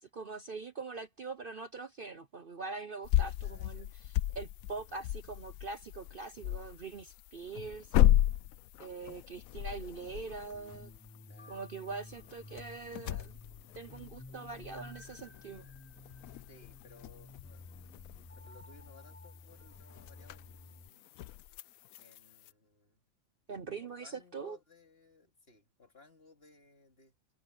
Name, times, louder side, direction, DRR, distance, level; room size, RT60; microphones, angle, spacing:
voice 1, 0.0-7.9 8.8-10.9 11.5-13.4 13.7-15.7 23.5-24.6, right 4 dB, 45° right, 1.0 m, -43 dB
sound 1, 3.0-22.5, left 13 dB, 80° left, 1.0 m, -35 dB
voice 2, 3.4-3.9 11.3-11.6 16.5-17.7 18.1-21.1 22.0-23.0 23.5-27.1, left 4 dB, 45° left, 2.8 m, -61 dB
sound 2, 10.5-20.9, left 2 dB, 10° left, 0.9 m, -53 dB
sound 3, 11.3-16.4, right 2 dB, 70° right, 7.5 m, -67 dB
omnidirectional pair, 1.5 m